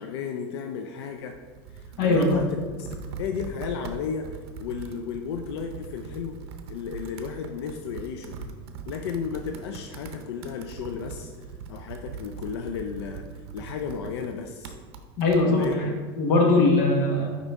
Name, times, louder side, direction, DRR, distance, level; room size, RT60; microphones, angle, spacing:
voice 1, 0.0-1.4 1.7-6.4 6.7-8.4 8.9-11.3 11.7-13.3 13.5-14.7 15.4-15.7, left 6 dB, 85° left, 5 dB, 0.4 m, -34 dB
Computer keyboard, 1.2-15.8, right 5 dB, 75° right, 0.6 m, -41 dB
voice 2, 2.0-2.4 15.2-15.9 16.2-17.4, left 2 dB, 50° left, 1 dB, 1.2 m, -21 dB
5.6 x 4.9 x 3.6 m, 1.5 s
supercardioid pair, 170°, 13 cm